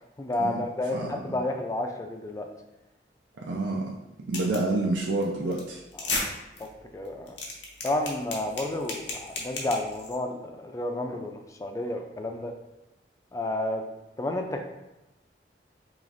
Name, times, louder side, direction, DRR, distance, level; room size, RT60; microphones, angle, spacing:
voice 1, 0.2-2.5 6.0-6.2 6.6-7.4 7.8-12.5 13.3-13.8 14.2-14.6, left 1 dB, 20° left, 4 dB, 0.3 m, -31 dB
voice 2, 0.9-1.4 3.4-3.9 4.3-5.8, right 2 dB, 85° right, -2 dB, 0.5 m, -28 dB
sound 1, 4.3-4.7 5.0-5.2 5.5-5.6 5.9-6.2 6.6-6.7 7.1-10.2, left 3 dB, 75° left, 0.8 m, -33 dB
4.9 x 3.1 x 2.5 m, 0.96 s
head